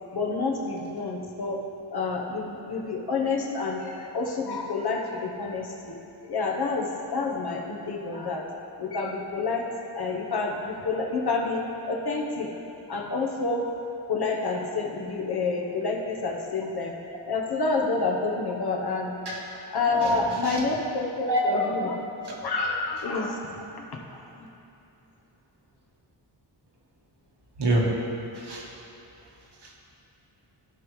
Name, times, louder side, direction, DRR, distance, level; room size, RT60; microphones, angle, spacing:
voice 1, 0.1-1.6 1.9-6.0 6.2-8.5 8.8-12.5 12.9-13.7 14.1-16.9 17.3-19.1 19.5-22.0 22.4-23.6 24.1-24.5, left 3 dB, 55° left, -1 dB, 1.1 m, -28 dB
voice 2, 21.3-21.6 22.3-22.4 27.6-27.9 28.3-28.7 29.6-29.7, right 1 dB, 60° right, -3 dB, 1.5 m, -26 dB
16.0 x 5.4 x 3.2 m, 2.9 s
wide cardioid pair, 180°, 45 cm